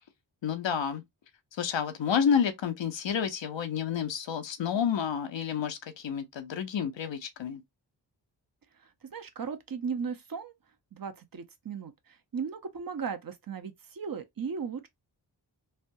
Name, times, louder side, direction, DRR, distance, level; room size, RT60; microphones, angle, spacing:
voice 1, 0.4-1.0 1.5-7.6, left 7 dB, 80° left, 0.7 m, -30 dB
voice 2, 9.1-10.5 10.9-14.9, right 6 dB, 50° right, 0.8 m, -36 dB
3.3 x 2.2 x 2.6 m
cardioid pair, 40°, 44 cm